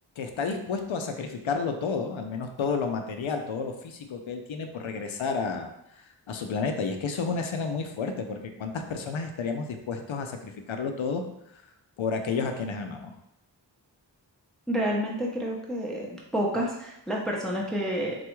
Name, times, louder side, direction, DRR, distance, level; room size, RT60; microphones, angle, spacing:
voice 1, 0.2-5.7 6.3-11.2 12.0-13.1, left 5 dB, 85° left, 5 dB, 0.5 m, -31 dB
voice 2, 14.7-18.2, equal, ahead, -2 dB, 0.6 m, -29 dB
4.0 x 2.3 x 3.0 m, 0.83 s
wide cardioid pair, 70°, 46 cm